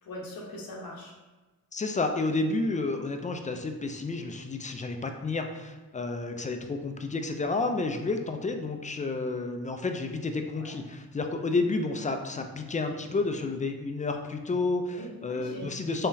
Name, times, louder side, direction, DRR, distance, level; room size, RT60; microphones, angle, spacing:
voice 1, 0.0-1.1 10.6-10.7 14.8-15.7, left 1 dB, 70° left, -2 dB, 1.0 m, -41 dB
voice 2, 1.7-16.1, left 3 dB, 20° left, 5 dB, 0.4 m, -30 dB
3.8 x 3.0 x 2.7 m, 1.2 s
cardioid pair, 65°, 36 cm